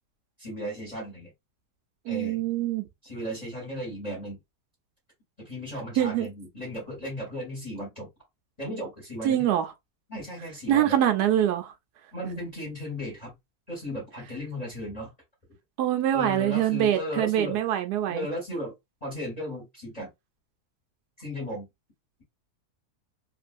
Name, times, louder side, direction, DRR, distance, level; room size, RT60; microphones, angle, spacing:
voice 1, 0.4-1.3 2.1-2.5 3.0-4.4 5.4-8.1 8.6-9.4 10.1-11.0 12.1-13.3 13.7-15.1 16.1-17.6 18.1-18.7 19.0-20.1 21.2-21.7, equal, 25° left, 1.4 m, -35 dB
voice 2, 2.1-2.8 6.0-6.3 9.2-9.7 10.7-11.7 15.8-18.3, right 11 dB, 80° right, 1.2 m, -24 dB
3.0 x 2.6 x 2.5 m
omnidirectional pair, 1.7 m